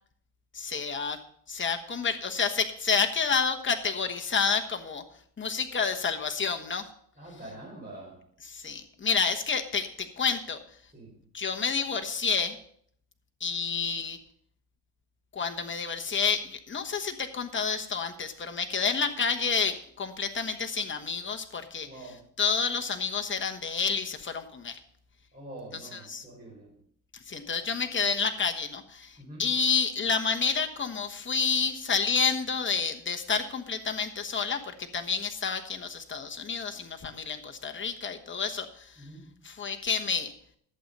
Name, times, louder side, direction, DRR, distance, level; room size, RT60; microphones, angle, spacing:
voice 1, 0.5-1.2 1.5-5.0 5.4-6.8 8.5-10.6 11.3-12.6 13.4-14.2 15.3-21.9 22.4-24.8 25.9-26.2 27.3-39.0 39.4-40.3, left 5 dB, 25° left, 5 dB, 1.2 m, -29 dB
voice 2, 7.1-8.2 10.9-11.3 21.8-22.3 25.3-26.8 29.2-29.5 39.0-39.5, right 1 dB, 20° right, -7 dB, 5.0 m, -45 dB
11.5 x 8.1 x 5.4 m, 0.64 s
cardioid pair, 115°, 44 cm